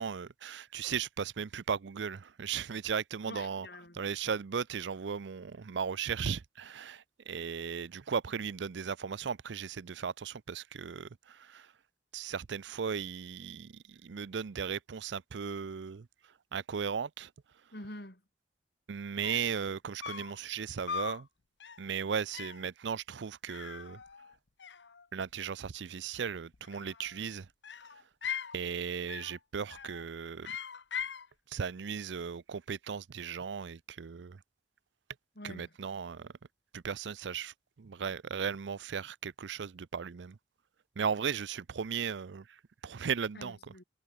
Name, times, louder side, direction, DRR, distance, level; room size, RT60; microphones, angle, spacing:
voice 1, 0.0-3.7 3.9-11.7 12.1-16.1 16.5-17.3 18.9-21.3 21.8-24.0 25.1-27.5 28.5-30.5 31.5-34.4 35.4-36.3 36.7-40.4 41.0-43.6, right 6 dB, 80° right, 0.5 m, -36 dB
voice 2, 3.3-4.0 17.7-18.2 35.4-35.8 43.3-43.8, left 1 dB, 60° left, 5.2 m, -46 dB
sound 1, 18.9-19.0 19.2-19.6 20.0-20.4 20.9-21.2 21.6-21.9 22.3-22.7 23.5-24.3 24.6-25.3 26.5-27.2 27.6-28.6 29.1-29.4 29.7-30.1 30.4-31.3, left 7 dB, 80° left, 1.0 m, -40 dB
head